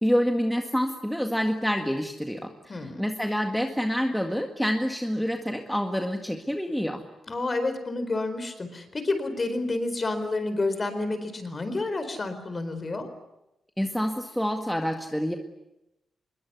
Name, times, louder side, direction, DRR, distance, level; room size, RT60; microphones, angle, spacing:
voice 1, 0.0-7.0 13.8-15.3, equal, 5° left, 4 dB, 1.8 m, -27 dB
voice 2, 2.7-3.0 7.3-13.1, left 2 dB, 30° left, 10 dB, 4.4 m, -29 dB
25.5 x 22.0 x 9.7 m, 0.90 s
wide cardioid pair, 125°, 0 cm